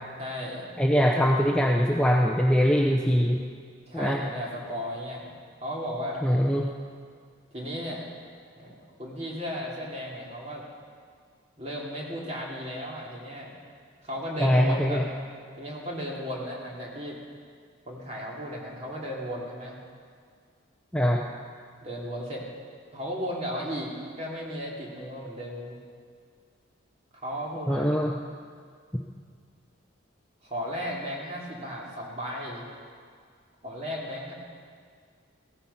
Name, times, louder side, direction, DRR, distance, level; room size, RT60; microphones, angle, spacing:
voice 1, 0.2-0.7 3.9-5.4 5.6-6.2 7.5-8.0 8.5-10.6 11.6-13.5 14.0-15.1 15.6-17.2 17.8-19.8 21.8-22.5 22.9-25.8 27.1-27.9 30.4-32.6 33.6-34.3, equal, 30° right, -3 dB, 3.0 m, -35 dB
voice 2, 0.8-3.4 3.9-4.2 6.2-6.7 14.4-15.1 20.9-21.2 27.7-28.1, equal, 5° left, -1 dB, 0.7 m, -22 dB
16.5 x 14.0 x 5.7 m, 2.1 s
head